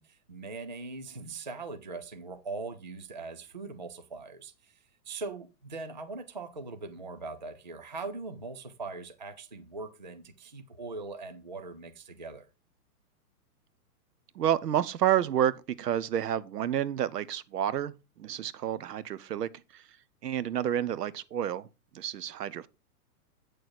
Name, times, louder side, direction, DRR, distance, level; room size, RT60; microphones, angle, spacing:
voice 1, 0.0-4.8 5.1-12.5, right 3 dB, 30° right, 0.4 m, -41 dB
voice 2, 14.3-15.5 15.8-17.9 18.2-19.8 20.2-21.7 21.9-22.7, right 10 dB, 80° right, 1.0 m, -29 dB
8.5 x 6.3 x 4.6 m
hypercardioid pair, 180°, 47 cm